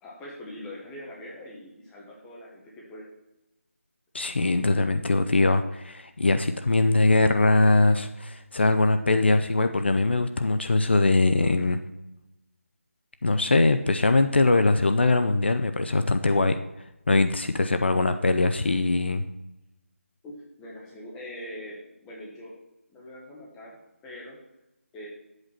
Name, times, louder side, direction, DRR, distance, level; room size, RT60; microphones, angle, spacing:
voice 1, 0.0-3.1 20.2-22.5 22.9-23.8 24.0-24.4 24.9-25.1, left 1 dB, 5° left, -4 dB, 0.9 m, -42 dB
voice 2, 4.1-11.8 13.2-16.6 17.1-19.2, left 2 dB, 50° left, 9 dB, 0.6 m, -22 dB
9.1 x 7.9 x 4.2 m, 0.94 s
figure-of-eight pair, 170°, 8 cm